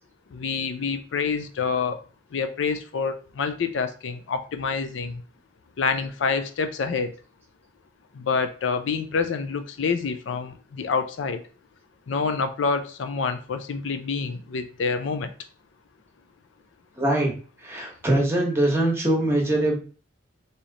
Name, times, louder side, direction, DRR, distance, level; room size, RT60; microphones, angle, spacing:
voice 1, 0.3-2.0 2.3-5.2 5.8-7.1 8.1-11.4 12.1-15.3, left 5 dB, 75° left, 9 dB, 0.4 m, -27 dB
voice 2, 17.0-17.3 17.6-19.8, right 1 dB, 15° right, 0 dB, 0.9 m, -22 dB
3.1 x 2.7 x 3.8 m, 0.38 s
head